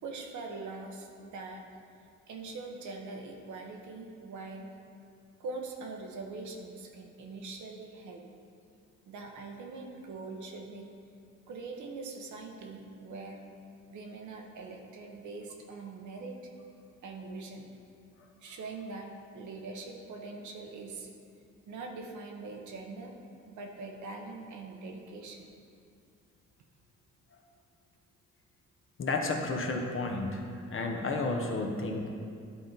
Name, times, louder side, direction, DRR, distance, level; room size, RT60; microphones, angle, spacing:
voice 1, 0.0-1.6 2.3-4.7 5.4-8.2 9.1-10.9 11.5-13.4 13.9-16.3 17.0-17.8 18.4-21.1 21.7-23.1 23.5-25.5, right 3 dB, 75° right, 2 dB, 1.0 m, -42 dB
voice 2, 29.0-32.1, left 3 dB, 45° left, 2 dB, 1.0 m, -32 dB
11.0 x 3.9 x 4.0 m, 2.3 s
cardioid pair, 90°, 30 cm